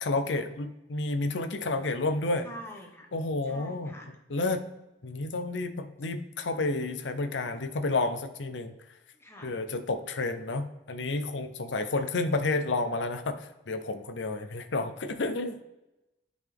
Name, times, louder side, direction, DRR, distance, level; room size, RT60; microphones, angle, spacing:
voice 1, 0.0-2.5 3.1-3.9 4.3-4.6 5.0-8.7 9.4-15.6, left 2 dB, 85° left, 8 dB, 0.7 m, -30 dB
voice 2, 1.8-3.1 3.5-4.2 9.2-9.6 11.9-12.1 14.3-14.6, equal, 15° left, 1 dB, 1.1 m, -47 dB
11.0 x 4.0 x 3.5 m, 0.95 s
head